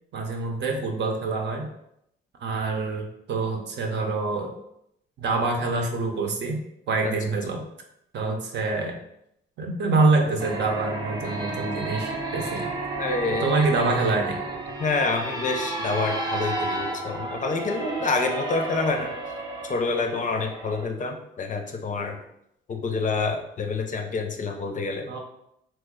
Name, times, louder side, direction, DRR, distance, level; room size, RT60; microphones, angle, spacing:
voice 1, 0.1-1.7 2.4-4.5 5.2-7.6 8.1-9.0 9.6-12.7 13.3-14.4 25.1-25.2, right 3 dB, 60° right, 2 dB, 0.7 m, -26 dB
sound 1, 10.4-20.8, right 2 dB, 20° right, 0.6 m, -32 dB
voice 2, 13.0-13.5 14.8-19.1 19.7-22.2 22.7-25.1, left 3 dB, 40° left, 4 dB, 0.5 m, -27 dB
3.0 x 2.1 x 3.6 m, 0.78 s
cardioid pair, 90°, 20 cm